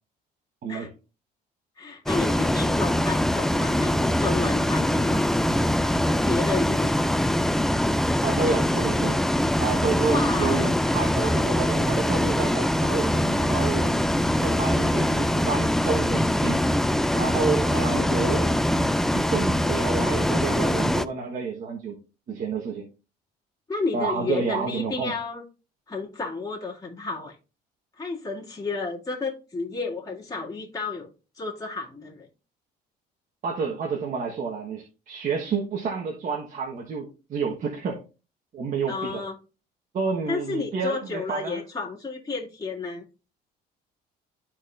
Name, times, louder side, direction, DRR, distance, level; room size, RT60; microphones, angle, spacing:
voice 1, 1.8-5.2 5.8-7.0 10.1-10.7 17.8-18.4 23.7-25.4 25.9-27.3 28.0-31.1 31.4-32.3 38.9-39.3 40.3-43.0, left 3 dB, 20° left, 2.3 m, -31 dB
Bus, 2.1-21.1, left 1 dB, ahead, 0.3 m, -23 dB
voice 2, 8.2-9.2 9.6-14.1 14.4-16.6 17.1-18.5 19.1-21.9 22.3-22.9 23.9-25.1 33.4-38.0 38.5-39.2 39.9-41.6, right 5 dB, 50° right, 1.3 m, -29 dB
13.0 x 4.3 x 2.5 m
cardioid pair, 110°, 17 cm